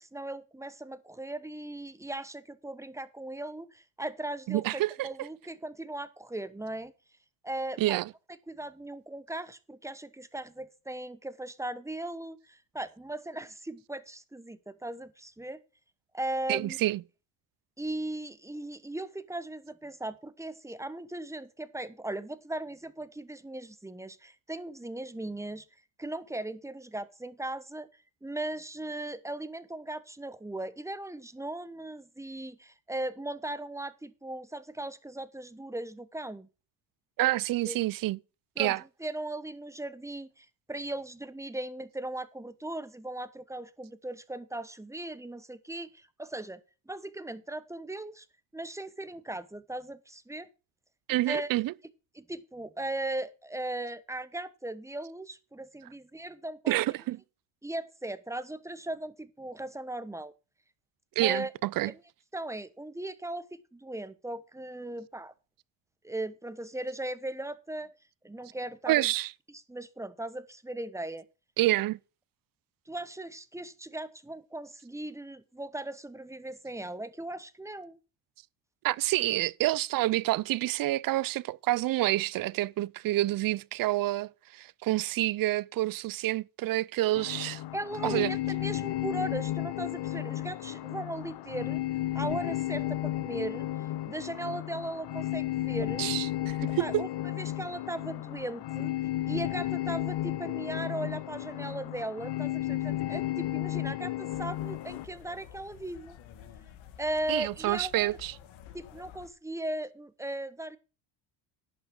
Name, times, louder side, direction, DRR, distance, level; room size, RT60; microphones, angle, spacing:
voice 1, 0.0-6.9 7.4-8.0 8.5-15.6 16.1-16.8 17.8-25.7 26.0-27.9 28.2-36.5 37.6-37.8 38.6-46.6 46.9-48.3 48.5-50.5 51.3-51.5 52.1-56.8 57.6-60.3 61.2-61.5 61.8-62.0 62.3-65.3 66.0-67.9 68.2-69.1 69.5-71.3 72.9-78.0 87.7-91.8 92.1-96.0 96.7-98.9 99.3-106.2 107.0-108.2 108.7-110.8, right 1 dB, 5° right, 1.0 m, -38 dB
voice 2, 4.5-5.3 7.8-8.1 16.5-17.0 37.2-38.2 38.6-38.8 51.1-51.7 56.7-57.2 61.2-61.9 68.9-69.3 71.6-72.0 78.8-87.6 88.0-88.3 96.0-97.0 107.3-108.3, right 16 dB, 50° right, 0.5 m, -28 dB
sound 1, 87.1-105.0, left 14 dB, 60° left, 1.0 m, -33 dB
sound 2, 104.3-109.3, left 10 dB, 80° left, 1.7 m, -51 dB
11.0 x 6.4 x 6.1 m
supercardioid pair, 85°, 46 cm